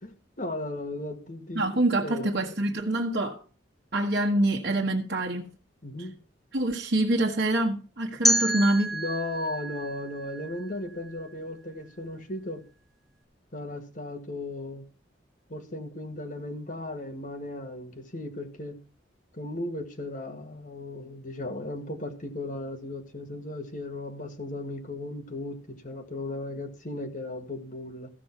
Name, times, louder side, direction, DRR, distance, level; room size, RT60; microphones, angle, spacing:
voice 1, 0.0-1.7 2.0-2.3 5.8-6.2 8.9-12.6 13.5-14.8 15.5-18.8 19.3-28.1, left 2 dB, 45° left, 1.8 m, -36 dB
voice 2, 1.5-3.4 3.9-5.5 6.5-8.9, right 1 dB, 60° right, 1.3 m, -25 dB
sound 1, 8.2-11.2, equal, ahead, 0.6 m, -29 dB
14.5 x 6.3 x 5.8 m
head